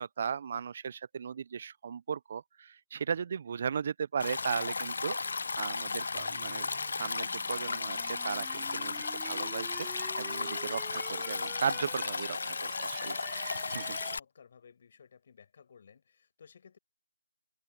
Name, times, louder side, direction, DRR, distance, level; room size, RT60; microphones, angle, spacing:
voice 1, 0.0-6.7 7.0-14.0, right 7 dB, 35° right, 0.7 m, -37 dB
Stream, 4.2-14.2, left 4 dB, 55° left, 0.6 m, -35 dB
sound 1, 6.2-14.2, right 3 dB, 5° right, 3.1 m, -50 dB
voice 2, 13.7-16.8, left 6 dB, 40° left, 7.4 m, -58 dB
figure-of-eight pair, 160°, 0 cm